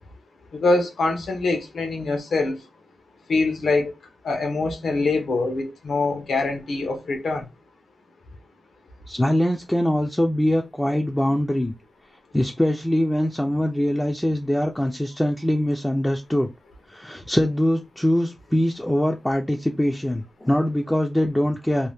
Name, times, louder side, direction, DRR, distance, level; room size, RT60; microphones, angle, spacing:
voice 1, 0.5-2.6 3.3-3.9 4.2-7.5, left 3 dB, 80° left, 0.9 m, -24 dB
voice 2, 9.1-11.7 12.3-16.5 16.9-21.9, left 1 dB, 5° left, 0.4 m, -23 dB
2.7 x 2.2 x 3.3 m
wide cardioid pair, 100°, 0 cm